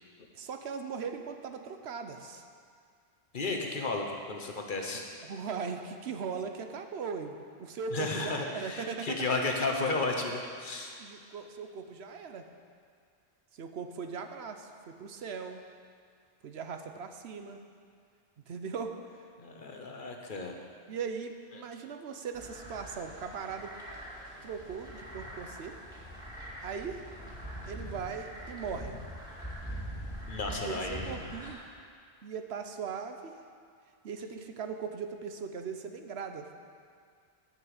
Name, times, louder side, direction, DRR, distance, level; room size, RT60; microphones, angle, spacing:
voice 1, 0.3-2.4 5.2-9.2 11.0-12.5 13.5-14.7 15.0-15.6 16.4-17.6 18.5-19.0 20.9-23.7 24.4-25.8 26.6-27.0 27.7-29.0 30.6-31.6 32.2-33.3 34.0-36.5, right 6 dB, 75° right, 6 dB, 1.0 m, -39 dB
voice 2, 3.3-5.0 7.9-11.0 19.4-20.5 21.5-21.6 30.3-31.3, left 3 dB, 50° left, 2 dB, 1.2 m, -33 dB
sound 1, 22.3-31.5, equal, 5° right, 2.2 m, -43 dB
11.0 x 5.7 x 8.1 m, 2.2 s
omnidirectional pair, 1.1 m